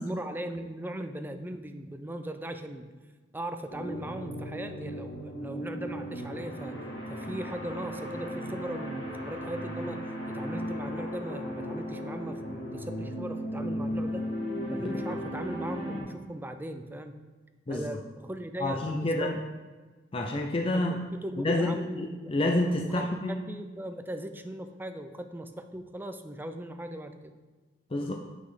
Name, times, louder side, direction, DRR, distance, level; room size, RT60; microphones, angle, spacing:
voice 1, 0.0-2.9 3.3-6.8 7.1-10.0 10.3-14.3 14.7-17.1 17.7-19.4 20.7-22.3 23.0-27.3, right 1 dB, 10° right, 8 dB, 0.5 m, -38 dB
sound 1, 3.7-16.0, equal, 85° left, 2.1 m, -36 dB
voice 2, 14.8-15.2 17.7-17.9 18.6-19.4 20.1-21.0 21.4-23.4 27.9-28.1, left 1 dB, 30° left, 3 dB, 0.5 m, -29 dB
8.3 x 6.1 x 3.8 m, 1.3 s
head